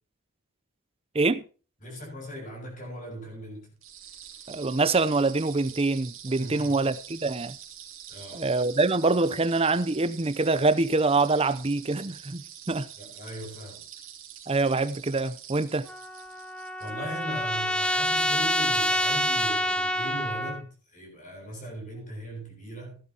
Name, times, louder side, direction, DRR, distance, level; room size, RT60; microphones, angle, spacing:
voice 1, 1.8-3.7 6.4-6.8 8.1-8.5 13.0-13.8 16.8-23.0, equal, 35° left, 7.2 m, -39 dB
sound 1, 3.8-17.2, right 10 dB, 65° right, 2.9 m, -45 dB
voice 2, 4.5-7.6 8.3-12.9 14.5-15.9, right 3 dB, 25° right, 0.6 m, -25 dB
Trumpet, 15.9-20.6, left 1 dB, 5° left, 0.9 m, -27 dB
16.5 x 11.0 x 2.9 m
head